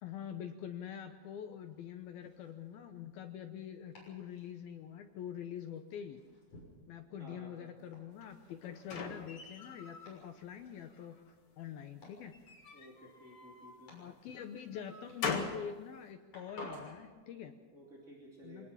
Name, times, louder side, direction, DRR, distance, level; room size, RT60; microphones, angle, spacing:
voice 1, 0.0-6.2 6.9-11.2 11.6-12.4 13.9-17.5 18.4-18.7, left 8 dB, 75° left, 6 dB, 2.4 m, -45 dB
Domestic sounds home sounds, 1.5-17.1, left 1 dB, 35° left, 7.4 m, -58 dB
voice 2, 7.2-7.7 12.7-13.9 17.7-18.7, right 1 dB, 20° right, -4 dB, 2.3 m, -54 dB
sound 1, 8.2-10.1 10.6-11.3 12.3-13.8 14.4-15.7, left 5 dB, 50° left, 1.7 m, -41 dB
24.5 x 19.5 x 5.7 m, 1.4 s
omnidirectional pair, 5.3 m